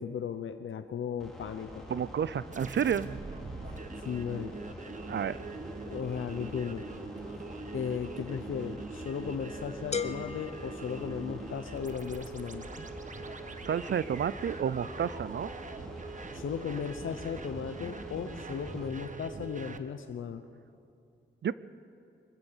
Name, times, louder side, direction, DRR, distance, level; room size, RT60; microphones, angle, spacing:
voice 1, 0.0-1.8 3.7-4.5 5.8-6.9 7.7-12.7 16.3-20.4, left 7 dB, 90° left, 8 dB, 0.8 m, -36 dB
sound 1, 1.2-18.9, left 1 dB, ahead, 4.0 m, -46 dB
voice 2, 1.9-3.1 5.1-5.4 13.7-15.5 21.4-21.5, right 8 dB, 65° right, 17 dB, 0.5 m, -30 dB
sound 2, 2.5-19.8, right 4 dB, 40° right, 1.1 m, -43 dB
sound 3, 9.9-11.8, left 5 dB, 35° left, 0.8 m, -38 dB
24.0 x 15.0 x 7.2 m, 2.5 s
wide cardioid pair, 105°, 20 cm